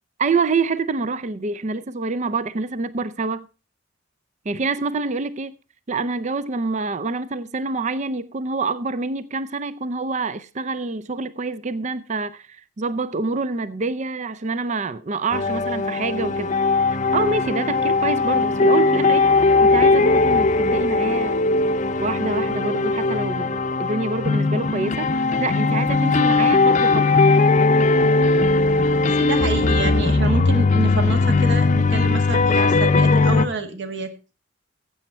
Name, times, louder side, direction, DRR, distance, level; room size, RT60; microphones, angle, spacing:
voice 1, 0.2-3.5 4.5-5.5 5.9-16.5 17.1-19.3 19.6-21.4 22.0-25.1 25.4-27.1, right 3 dB, 35° right, 0.5 m, -26 dB
sound 1, 15.3-33.5, left 3 dB, 40° left, 0.6 m, -19 dB
voice 2, 29.0-34.1, right 3 dB, 60° right, 1.8 m, -28 dB
15.5 x 7.8 x 4.3 m
head